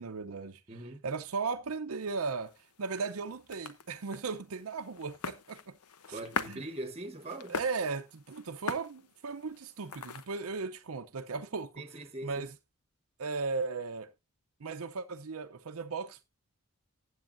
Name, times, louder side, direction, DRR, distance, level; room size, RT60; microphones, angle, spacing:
voice 1, 0.0-0.6 1.0-5.8 6.1-6.2 6.5-6.6 7.5-11.8 12.2-12.5 13.2-14.1 14.6-16.2, right 4 dB, 70° right, 0.6 m, -36 dB
voice 2, 0.7-1.0 6.1-7.6 11.8-12.5, right 1 dB, 30° right, 1.2 m, -41 dB
sound 1, 2.4-10.5, left 5 dB, 90° left, 0.8 m, -43 dB
15.0 x 8.2 x 2.6 m
head